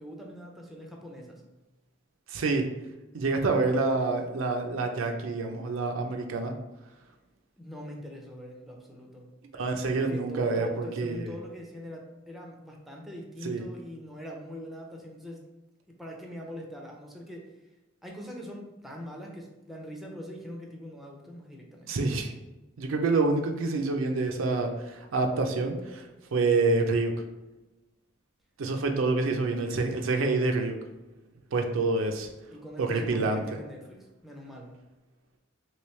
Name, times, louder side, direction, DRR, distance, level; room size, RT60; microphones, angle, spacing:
voice 1, 0.0-1.4 7.6-9.3 9.9-15.4 15.9-17.6 18.0-22.0 32.5-34.8, equal, ahead, -1 dB, 0.5 m, -42 dB
voice 2, 2.3-2.7 3.1-6.5 9.5-11.3 13.4-13.6 21.9-22.3 22.8-27.1 28.6-30.8 31.5-32.3 32.8-33.4, right 3 dB, 70° right, 4 dB, 0.4 m, -27 dB
3.1 x 2.9 x 3.1 m, 1.1 s
head